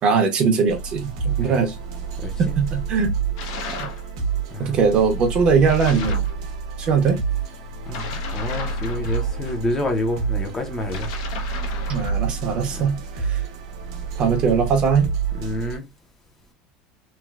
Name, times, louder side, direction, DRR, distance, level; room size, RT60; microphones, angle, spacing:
voice 1, 0.0-1.8 2.4-3.1 3.7-3.9 4.6-6.2 6.8-7.2 11.9-13.4 14.2-15.1, right 5 dB, 35° right, 0.7 m, -20 dB
sound 1, 0.7-15.8, right 5 dB, 90° right, 0.8 m, -28 dB
sound 2, 3.4-4.1 5.7-6.3 7.9-9.6 10.8-12.2, left 5 dB, 80° left, 0.6 m, -35 dB
voice 2, 7.9-11.1 12.7-12.9 14.4-14.5 15.4-15.8, left 1 dB, 15° left, 0.5 m, -28 dB
3.1 x 2.0 x 2.2 m
cardioid pair, 155°, 3 cm